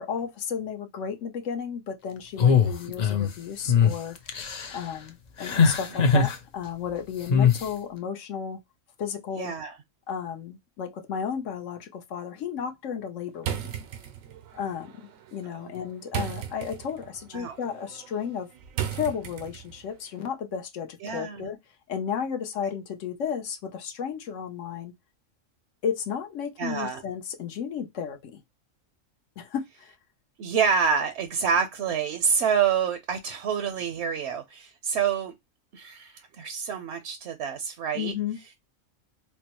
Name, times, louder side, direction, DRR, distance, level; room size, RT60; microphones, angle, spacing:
voice 1, 0.0-4.2 4.7-8.6 9.0-9.5 10.1-13.7 14.5-15.0 15.3-18.5 18.9-21.6 21.9-24.9 25.8-28.4 29.4-29.9 37.9-38.4, left 7 dB, 70° left, 1.0 m, -33 dB
sound 1, 2.4-3.3 3.7-3.9 4.3-4.8 5.4-6.4 7.3-7.6, left 6 dB, 50° left, 0.5 m, -21 dB
voice 2, 9.4-9.8 17.3-17.6 21.0-21.5 26.6-27.0 30.4-35.3 35.7-38.1, right 6 dB, 65° right, 0.8 m, -27 dB
sound 2, 13.4-19.9, right 9 dB, 90° right, 1.1 m, -37 dB
4.4 x 2.0 x 2.9 m
omnidirectional pair, 1.4 m